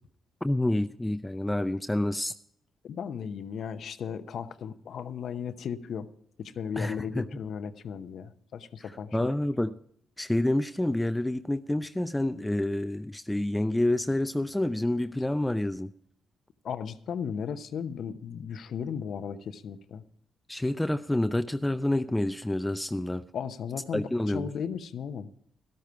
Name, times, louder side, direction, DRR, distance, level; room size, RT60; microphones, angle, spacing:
voice 1, 0.4-2.3 6.7-7.3 8.8-9.8 10.2-15.9 20.5-23.3 23.9-24.5, left 1 dB, 10° left, 11 dB, 0.5 m, -28 dB
voice 2, 2.8-6.1 6.4-9.3 16.6-20.0 23.3-25.3, left 7 dB, 65° left, 12 dB, 0.8 m, -36 dB
13.0 x 12.5 x 4.6 m, 0.66 s
hypercardioid pair, 50°, 0 cm